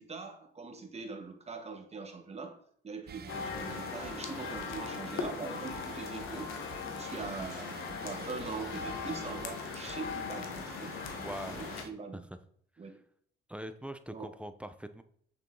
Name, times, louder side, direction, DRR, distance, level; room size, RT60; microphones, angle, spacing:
voice 1, 0.0-2.6 2.8-6.6 6.9-12.2 12.8-13.0 14.1-14.3, right 4 dB, 30° right, 6 dB, 1.7 m, -42 dB
sound 1, 3.1-11.9, right 7 dB, 50° right, 0.8 m, -48 dB
sound 2, 3.3-11.8, left 6 dB, 85° left, 1.4 m, -39 dB
voice 2, 11.2-11.7 12.1-12.2 12.8-13.0 13.5-15.0, right 1 dB, 5° right, 10 dB, 0.7 m, -42 dB
8.4 x 7.1 x 3.9 m, 0.62 s
cardioid pair, 90°, 20 cm